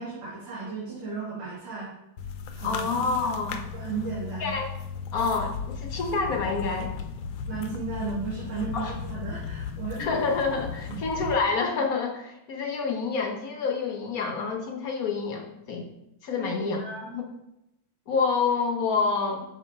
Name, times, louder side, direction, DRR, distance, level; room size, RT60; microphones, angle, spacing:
voice 1, 0.0-1.9 2.5-2.9 3.7-4.5 7.5-10.0 10.9-11.0 16.3-17.1, right 4 dB, 55° right, -7 dB, 2.1 m, -35 dB
sound 1, 2.2-11.3, left 6 dB, 75° left, 1.3 m, -36 dB
voice 2, 2.6-3.6 4.4-4.7 5.1-6.9 8.7-8.9 10.0-15.9 16.2-16.8 17.1-17.2 18.1-19.4, left 4 dB, 55° left, 2 dB, 1.1 m, -27 dB
6.3 x 3.8 x 5.2 m, 0.88 s
omnidirectional pair, 2.4 m